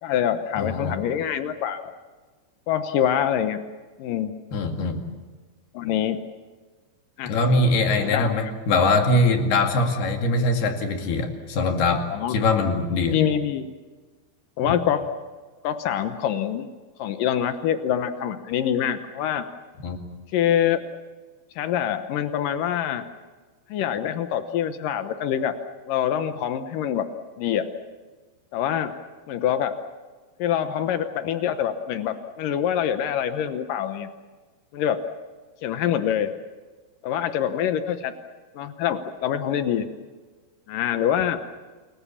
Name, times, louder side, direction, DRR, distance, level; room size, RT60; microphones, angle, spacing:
voice 1, 0.0-1.8 2.7-3.6 4.0-4.3 5.7-6.2 7.2-7.4 8.0-8.5 12.1-12.4 13.1-13.7 14.6-15.1 15.6-16.7 17.0-19.4 20.3-20.8 21.6-23.1 23.7-25.6 25.9-27.1 27.4-27.7 28.5-28.9 29.3-29.8 30.4-34.1 34.7-35.0 35.6-36.3 37.0-38.1 38.5-39.9 40.7-41.4, left 9 dB, 85° left, 9 dB, 1.9 m, -25 dB
voice 2, 0.6-1.0 4.5-5.0 7.2-13.2 14.6-14.7 19.8-20.0, left 2 dB, 60° left, 4 dB, 4.1 m, -22 dB
28.5 x 22.0 x 7.2 m, 1.4 s
omnidirectional pair, 5.4 m